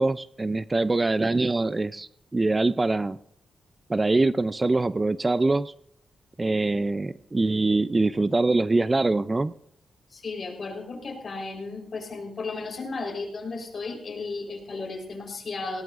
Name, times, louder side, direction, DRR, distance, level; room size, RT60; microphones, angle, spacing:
voice 1, 0.0-3.2 3.9-5.7 6.4-9.5, right 2 dB, 25° right, 15 dB, 0.4 m, -24 dB
voice 2, 10.1-15.8, left 3 dB, 50° left, 2 dB, 4.1 m, -34 dB
18.5 x 17.0 x 2.5 m, 0.70 s
cardioid pair, 90°, 0 cm